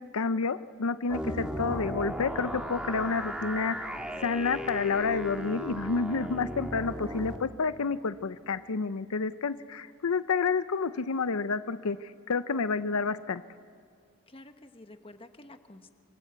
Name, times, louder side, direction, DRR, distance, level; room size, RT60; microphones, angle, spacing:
voice 1, 0.0-3.9 4.2-13.4, left 4 dB, 85° left, 13 dB, 0.7 m, -29 dB
sound 1, 1.1-7.4, equal, 5° right, 1.7 m, -36 dB
voice 2, 6.8-7.2 14.3-15.9, left 1 dB, 25° left, 7 dB, 1.2 m, -50 dB
27.0 x 25.0 x 8.1 m, 2.1 s
head